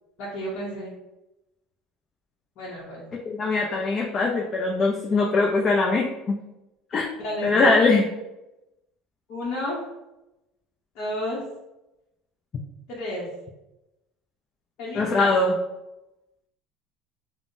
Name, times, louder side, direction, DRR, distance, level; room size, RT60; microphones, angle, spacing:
voice 1, 0.2-0.9 2.6-3.1 6.9-7.7 9.3-9.8 10.9-11.4 12.9-13.3 14.8-15.3, left 1 dB, 60° left, -6 dB, 0.7 m, -31 dB
voice 2, 3.3-6.4 6.9-7.0 7.4-8.0 14.9-15.6, left 3 dB, 35° left, 0 dB, 0.4 m, -21 dB
3.5 x 2.0 x 2.5 m, 0.95 s
supercardioid pair, 105°, 0 cm